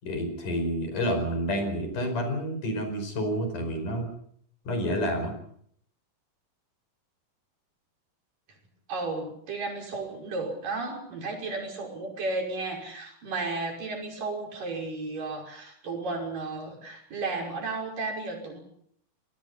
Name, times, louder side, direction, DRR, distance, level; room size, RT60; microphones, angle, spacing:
voice 1, 0.0-4.1 4.7-5.3, equal, 70° left, 7 dB, 6.7 m, -29 dB
voice 2, 8.9-18.6, right 3 dB, 85° right, 1 dB, 7.5 m, -33 dB
28.0 x 20.5 x 5.7 m, 0.67 s
omnidirectional pair, 3.8 m